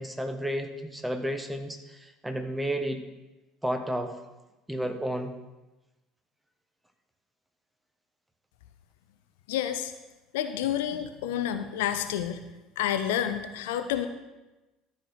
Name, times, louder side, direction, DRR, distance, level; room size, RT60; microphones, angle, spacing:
voice 1, 0.0-3.0 3.6-4.1 4.7-5.3, equal, 5° right, 7 dB, 1.1 m, -32 dB
voice 2, 9.5-9.9 10.3-12.4 12.8-14.1, left 10 dB, 65° left, 9 dB, 0.6 m, -29 dB
12.5 x 4.7 x 6.4 m, 1.1 s
figure-of-eight pair, 65°, 0 cm